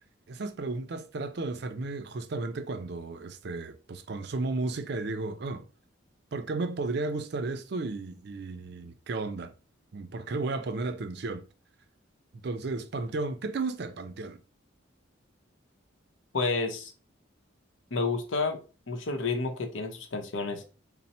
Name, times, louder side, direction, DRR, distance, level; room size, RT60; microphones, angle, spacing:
voice 1, 0.3-5.7 6.3-9.5 9.9-11.5 12.4-14.4, right 3 dB, 55° right, 0.4 m, -33 dB
voice 2, 16.3-16.9 17.9-20.6, left 3 dB, 75° left, 0.8 m, -30 dB
4.2 x 2.0 x 4.1 m
head